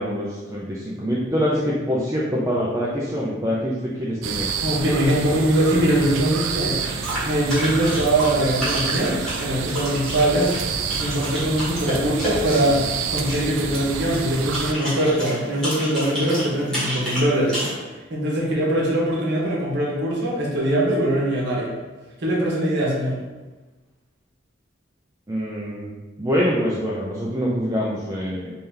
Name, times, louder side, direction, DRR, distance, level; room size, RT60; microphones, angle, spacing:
voice 1, 0.0-4.5 25.3-28.5, equal, 15° right, -5 dB, 0.4 m, -25 dB
sound 1, 4.2-14.7, right 6 dB, 90° right, 0.3 m, -29 dB
voice 2, 4.6-6.8 7.2-10.5 11.0-12.8 13.1-17.6 18.1-21.7 22.2-23.2, right 1 dB, 65° right, -4 dB, 1.0 m, -22 dB
sound 2, 6.8-17.7, equal, 5° left, 1.5 m, -30 dB
3.3 x 2.8 x 3.7 m, 1.2 s
head